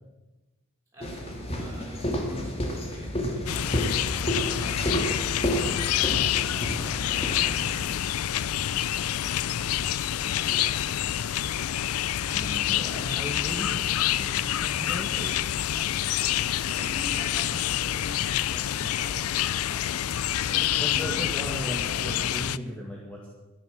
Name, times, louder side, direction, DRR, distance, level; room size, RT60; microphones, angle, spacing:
voice 1, 0.9-3.9 4.4-6.8 7.0-8.0 10.4-10.9 15.7-15.9 16.6-20.1 20.4-21.2, equal, 15° right, -7 dB, 6.7 m, -45 dB
sound 1, 1.0-7.8, equal, 25° left, 2.0 m, -30 dB
sound 2, 3.5-22.6, left 11 dB, 90° left, 0.4 m, -27 dB
voice 2, 12.3-15.3 20.8-23.3, equal, 5° left, -4 dB, 2.0 m, -37 dB
13.5 x 10.0 x 7.1 m, 1.1 s
head